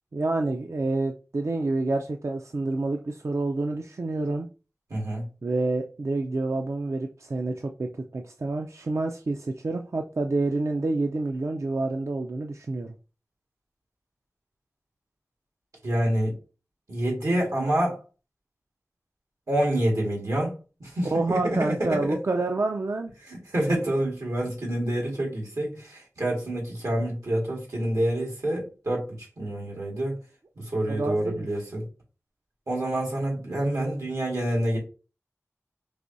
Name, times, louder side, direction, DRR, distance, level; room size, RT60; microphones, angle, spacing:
voice 1, 0.1-4.5 5.4-12.9 21.0-23.1 30.9-31.5, right 2 dB, 60° right, 4 dB, 0.4 m, -28 dB
voice 2, 4.9-5.3 15.8-16.4 16.9-18.0 19.5-22.2 23.3-29.1 29.4-30.2 30.6-31.9 32.7-34.8, right 1 dB, 90° right, -2 dB, 1.8 m, -27 dB
4.8 x 3.0 x 2.6 m, 0.34 s
wide cardioid pair, 45°, 6 cm